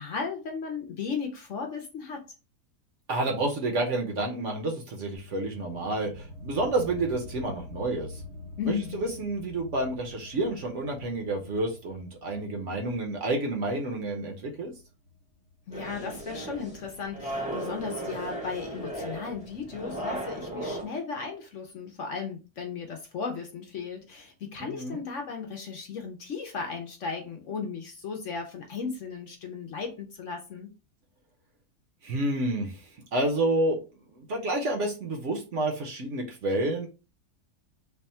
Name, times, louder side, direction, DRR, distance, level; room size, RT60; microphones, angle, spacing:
voice 1, 0.0-2.2 8.6-9.1 15.7-30.7, left 5 dB, 60° left, 3 dB, 0.9 m, -36 dB
voice 2, 3.1-8.2 8.6-14.7 24.6-25.0 32.0-32.8 33.1-33.8 34.1-36.9, right 2 dB, 55° right, 2 dB, 1.0 m, -29 dB
sound 1, 5.1-16.2, left 2 dB, 80° right, 1.4 m, -46 dB
sound 2, 15.7-20.8, right 1 dB, 5° right, 0.7 m, -36 dB
3.4 x 2.3 x 4.2 m, 0.32 s
omnidirectional pair, 1.7 m